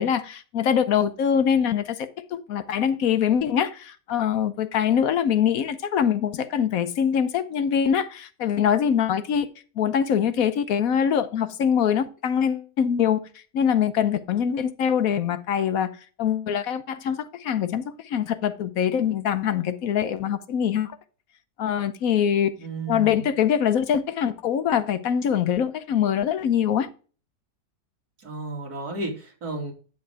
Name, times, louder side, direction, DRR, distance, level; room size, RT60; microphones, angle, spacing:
voice 1, 0.0-9.5 9.8-13.2 13.5-15.9 16.2-21.0 21.6-22.5 22.9-26.9, left 8 dB, 70° left, 1.1 m, -23 dB
voice 2, 22.6-23.3 28.2-29.7, right 2 dB, 80° right, 3.1 m, -33 dB
9.6 x 7.0 x 3.4 m
omnidirectional pair, 1.6 m